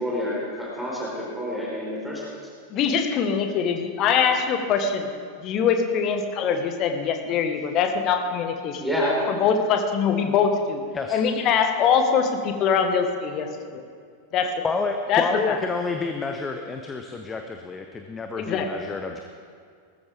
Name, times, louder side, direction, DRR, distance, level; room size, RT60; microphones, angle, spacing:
voice 1, 0.0-2.2 8.8-9.2, equal, ahead, -6 dB, 3.9 m, -28 dB
voice 2, 2.7-5.1 5.4-8.8 9.3-10.8 11.1-13.8 14.3-14.6 15.1-15.6 18.4-18.7, left 6 dB, 35° left, 6 dB, 1.4 m, -23 dB
voice 3, 14.6-19.2, left 4 dB, 15° left, 5 dB, 0.9 m, -29 dB
19.0 x 14.0 x 3.5 m, 2.2 s
figure-of-eight pair, 90°, 0 cm